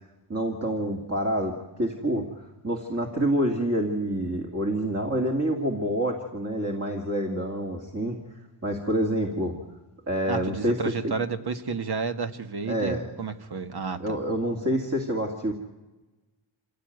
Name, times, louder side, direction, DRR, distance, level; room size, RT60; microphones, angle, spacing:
voice 1, 0.3-2.3 2.6-8.2 8.6-9.5 10.1-10.8 11.0-11.2 12.7-13.1 14.0-15.5, right 1 dB, 30° right, 1 dB, 2.4 m, -27 dB
voice 2, 10.3-14.2, right 5 dB, 50° right, 8 dB, 1.6 m, -31 dB
26.5 x 17.0 x 9.4 m, 1.1 s
wide cardioid pair, 130°, 49 cm